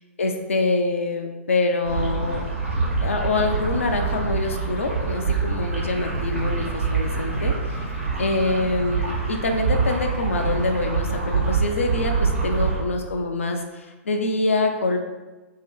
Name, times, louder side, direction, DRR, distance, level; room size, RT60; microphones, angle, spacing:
voice 1, 0.2-2.4 3.0-7.8 8.2-15.0, left 3 dB, 70° left, 4 dB, 0.4 m, -25 dB
sound 1, 1.8-12.8, right 4 dB, 80° right, 1.2 m, -25 dB
2.9 x 2.7 x 3.4 m, 1.2 s
figure-of-eight pair, 110°, 7 cm